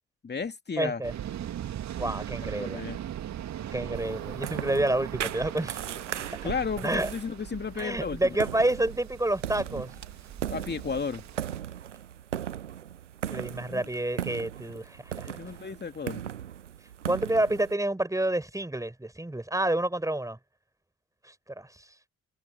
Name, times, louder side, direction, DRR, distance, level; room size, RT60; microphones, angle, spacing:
voice 1, 0.2-1.0 2.6-3.0 6.4-8.2 10.5-11.2 13.7-13.9 15.4-16.2, left 5 dB, 30° left, 2.5 m, -33 dB
voice 2, 0.8-1.1 2.0-2.8 3.7-5.8 6.3-6.4 6.8-7.1 7.8-9.9 13.3-15.3 17.1-20.4 21.2-21.7, right 1 dB, 10° right, 5.1 m, -29 dB
Waves surf, 1.0-11.6, right 11 dB, 50° right, 2.7 m, -39 dB
sound 1, 3.9-17.8, right 10 dB, 80° right, 1.1 m, -38 dB
figure-of-eight pair, 45°, 36 cm